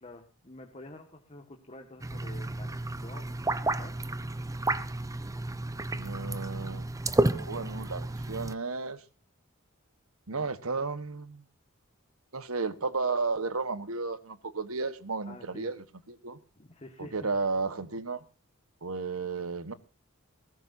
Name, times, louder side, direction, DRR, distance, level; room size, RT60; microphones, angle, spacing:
voice 1, 0.0-4.0 15.3-15.7 16.6-17.2, left 2 dB, 30° left, 1.8 m, -48 dB
sound 1, 2.0-8.5, right 2 dB, 15° right, 0.8 m, -32 dB
voice 2, 5.9-6.8 7.3-9.0 10.3-11.4 12.3-16.4 17.0-18.2 18.8-19.7, right 4 dB, 75° right, 1.4 m, -33 dB
21.0 x 17.5 x 2.8 m
head